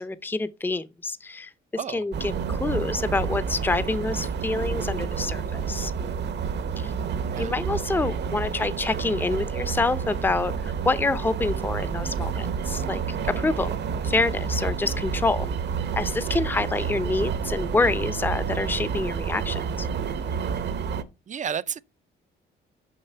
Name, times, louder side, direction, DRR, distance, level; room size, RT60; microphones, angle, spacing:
voice 1, 0.0-1.5 1.9-5.9 6.8-6.9 7.4-13.0 13.3-13.7 14.0-15.5 15.9-19.9, left 3 dB, 10° left, 0.6 m, -27 dB
sound 1, 2.1-21.0, right 6 dB, 60° right, 0.9 m, -29 dB
voice 2, 21.3-21.8, right 8 dB, 40° right, 0.5 m, -32 dB
6.7 x 5.6 x 5.5 m
cardioid pair, 90°, 20 cm